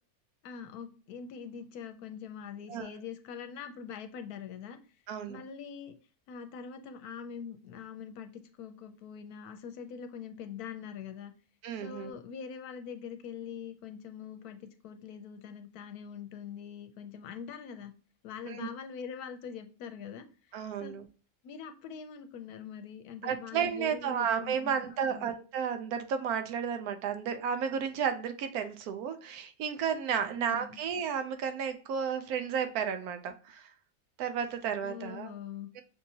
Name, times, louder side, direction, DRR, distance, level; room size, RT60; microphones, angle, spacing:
voice 1, 0.4-4.8 5.3-6.0 6.3-11.3 11.8-17.9 18.2-20.2 20.8-20.9 21.4-25.3 30.4-30.8 34.8-35.7, left 7 dB, 80° left, 8 dB, 1.1 m, -43 dB
voice 2, 5.1-5.4 11.6-12.1 18.5-18.7 20.5-21.1 23.2-33.7 34.2-35.3 35.8-35.9, right 7 dB, 80° right, 8 dB, 1.1 m, -33 dB
6.0 x 2.8 x 2.7 m, 0.36 s
omnidirectional pair, 1.6 m